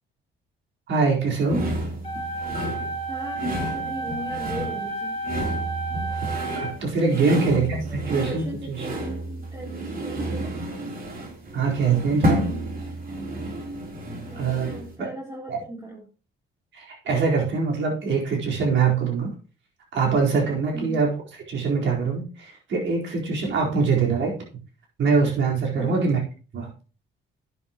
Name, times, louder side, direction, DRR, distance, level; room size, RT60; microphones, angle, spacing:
voice 1, 0.9-1.6 6.6-7.8 8.1-8.4 8.9-9.0 11.5-12.4 14.3-14.7 15.0-15.1 15.5-15.6 16.7-19.3 19.9-21.1 21.5-24.3 25.0-26.2 26.5-26.7, right 4 dB, 70° right, -1 dB, 4.4 m, -23 dB
sound 1, 1.5-14.9, right 1 dB, 45° right, 3.5 m, -31 dB
sound 2, 2.0-7.0, right 3 dB, 30° left, 2.7 m, -31 dB
voice 2, 3.1-5.2 7.2-10.6 14.2-16.1 20.7-21.0 25.7-26.1, equal, 20° right, -4 dB, 3.4 m, -38 dB
11.5 x 9.6 x 3.0 m, 0.36 s
cardioid pair, 90°, 20 cm